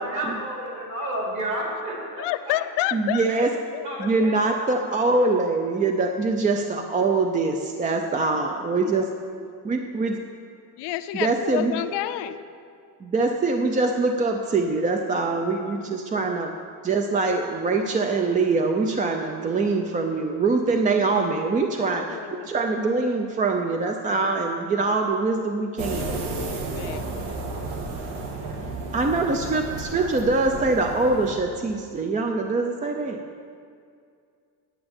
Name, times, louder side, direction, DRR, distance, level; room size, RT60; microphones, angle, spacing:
voice 1, 0.0-2.5 3.8-4.4 11.8-12.3 16.0-16.2 27.2-29.2, right 1 dB, 50° right, -2 dB, 3.1 m, -34 dB
voice 2, 2.2-4.1 8.8-8.9 9.4-9.5 10.8-12.4 15.3-15.4 21.8-22.5 26.4-27.4 33.0-33.1 33.4-33.5, left 14 dB, 85° left, 11 dB, 0.6 m, -30 dB
voice 3, 2.9-3.6 4.0-9.1 9.6-10.2 11.1-11.8 13.0-26.2 28.9-33.2, right 3 dB, 20° right, 4 dB, 0.4 m, -24 dB
sound 1, 25.8-31.3, right 3 dB, 75° right, 1.5 m, -32 dB
9.6 x 9.0 x 7.0 m, 2.3 s
cardioid pair, 165°, 41 cm